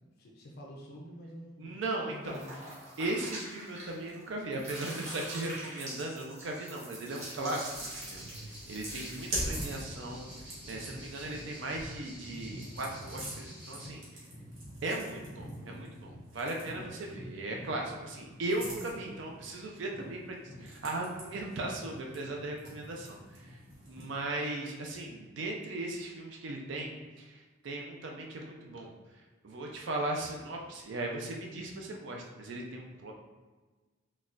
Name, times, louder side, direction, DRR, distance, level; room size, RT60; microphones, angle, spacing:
voice 1, 0.0-1.7 2.1-2.5, equal, 50° left, -1 dB, 0.4 m, -47 dB
voice 2, 1.6-2.4 3.0-8.3 8.7-10.3 10.6-14.0 14.8-23.6 23.9-28.9 29.4-33.1, right 2 dB, 60° right, 0 dB, 0.4 m, -37 dB
sound 1, 2.3-4.2 4.5-9.4, right 1 dB, 35° right, 0.9 m, -44 dB
sound 2, 7.1-13.9, equal, 5° right, 0.7 m, -51 dB
sound 3, 7.6-24.2, right 1 dB, 75° right, 1.2 m, -44 dB
4.0 x 2.2 x 2.4 m, 1.3 s
head